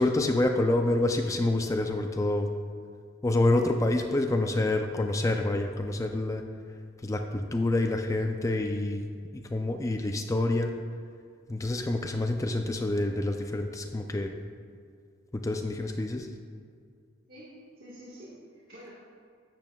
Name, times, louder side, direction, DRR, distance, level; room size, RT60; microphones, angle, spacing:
voice 1, 0.0-2.5 3.2-6.4 7.0-9.1 9.5-10.7 11.5-14.3 15.3-16.3, left 2 dB, 15° left, 5 dB, 0.4 m, -27 dB
voice 2, 17.3-18.9, equal, 50° right, -7 dB, 1.5 m, -48 dB
12.0 x 8.6 x 2.3 m, 2.2 s
head